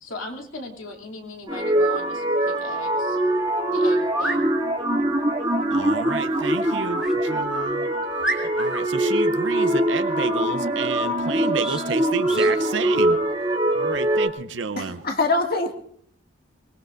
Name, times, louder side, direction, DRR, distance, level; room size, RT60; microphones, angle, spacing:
voice 1, 0.0-3.2 3.7-4.5, left 2 dB, 90° left, 1 dB, 2.8 m, -38 dB
sound 1, 1.5-14.3, right 1 dB, 20° right, 2.4 m, -23 dB
sound 2, 3.1-3.2 4.0-4.4 7.0-7.2 7.7-7.8 8.2-8.8 11.6-11.9 12.3-12.5, right 1 dB, 5° right, 1.9 m, -29 dB
voice 2, 5.7-7.9 8.3-13.2 13.7-15.0, right 4 dB, 65° right, 9 dB, 0.7 m, -30 dB
voice 3, 14.8-15.7, left 3 dB, 50° left, 3 dB, 2.1 m, -23 dB
24.0 x 20.5 x 2.6 m, 0.64 s
head